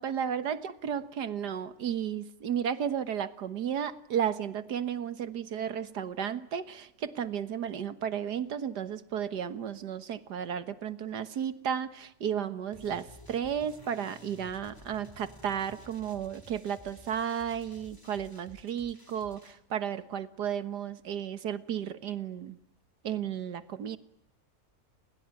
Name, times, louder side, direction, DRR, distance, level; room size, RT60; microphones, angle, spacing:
voice 1, 0.0-22.6 23.0-24.0, right 8 dB, 85° right, 12 dB, 1.9 m, -33 dB
sound 1, 12.7-19.5, equal, 10° left, 2.8 m, -53 dB
30.0 x 22.0 x 9.0 m, 0.76 s
omnidirectional pair, 1.7 m